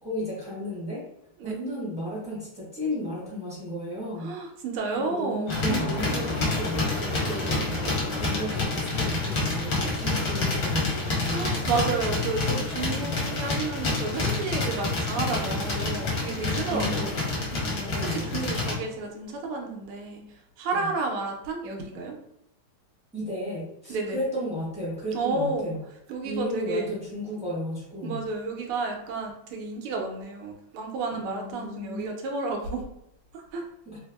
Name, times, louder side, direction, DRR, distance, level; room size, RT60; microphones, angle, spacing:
voice 1, 0.0-1.0 1.4-4.3 4.9-11.5 12.9-13.2 16.7-17.4 17.7-18.6 20.7-20.9 23.1-25.8 26.2-28.2 31.1-32.1 33.8-34.0, equal, 5° right, -7 dB, 0.8 m, -34 dB
voice 2, 4.2-5.9 11.3-17.7 18.0-22.2 23.9-24.2 25.1-25.7 26.1-26.9 28.0-32.9 33.3-33.7, right 3 dB, 85° right, 2 dB, 1.6 m, -31 dB
sound 1, 5.5-18.8, left 3 dB, 55° left, 1.2 m, -28 dB
3.4 x 3.2 x 2.3 m, 0.80 s
omnidirectional pair, 2.4 m